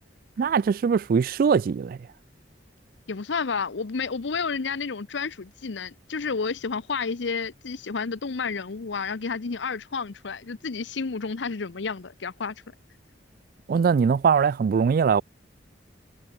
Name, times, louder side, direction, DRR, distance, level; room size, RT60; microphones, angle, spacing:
voice 1, 0.4-2.0 13.7-15.2, right 6 dB, 50° right, 0.3 m, -21 dB
voice 2, 3.1-12.5, left 5 dB, 75° left, 0.7 m, -30 dB
head